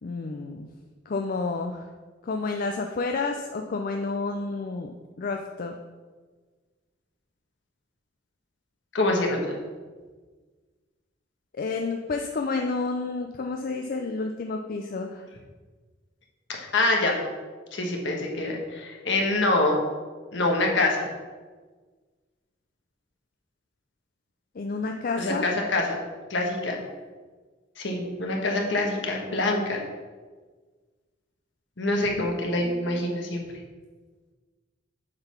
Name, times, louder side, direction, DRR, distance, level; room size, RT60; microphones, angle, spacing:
voice 1, 0.0-0.7 1.1-1.8 2.2-4.9 5.2-5.8 11.6-15.2 24.6-25.5 31.9-32.3 32.6-33.0, left 3 dB, 50° left, 4 dB, 0.4 m, -30 dB
voice 2, 8.9-9.6 16.5-17.2 17.7-19.8 20.3-21.1 25.2-26.0 26.3-26.8 27.8-29.8 31.8-33.4, left 2 dB, 65° left, 1 dB, 1.3 m, -25 dB
7.9 x 4.0 x 5.6 m, 1.4 s
head